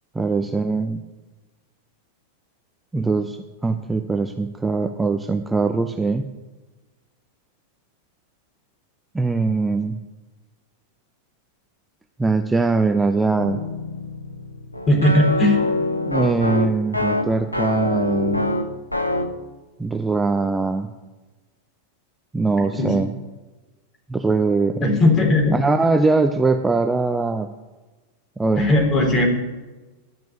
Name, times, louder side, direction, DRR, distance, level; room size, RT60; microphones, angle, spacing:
voice 1, 0.1-1.0 2.9-6.3 9.1-10.0 12.2-13.6 16.1-18.5 19.8-20.9 22.3-23.1 24.1-24.8 25.5-27.5 28.4-28.6, right 3 dB, 10° right, 7 dB, 0.6 m, -21 dB
sound 1, 13.4-19.4, left 2 dB, 85° left, 0.9 m, -25 dB
voice 2, 14.9-15.6 22.8-22.9 24.8-25.6 28.6-29.3, left 1 dB, 25° left, 2 dB, 3.8 m, -17 dB
12.5 x 6.0 x 8.5 m, 1.2 s
figure-of-eight pair, 90°, 0 cm